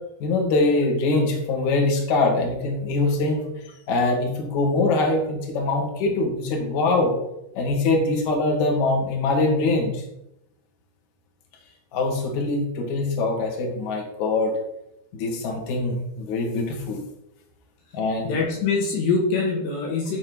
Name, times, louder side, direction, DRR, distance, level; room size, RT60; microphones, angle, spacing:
voice 1, 0.2-3.4 3.9-7.1 7.5-10.0 11.9-14.5 15.1-17.0 17.9-18.3, left 2 dB, 45° left, 0 dB, 3.0 m, -23 dB
voice 2, 18.2-20.2, left 4 dB, 65° left, 0 dB, 3.5 m, -24 dB
14.0 x 4.7 x 6.3 m, 0.83 s
omnidirectional pair, 5.6 m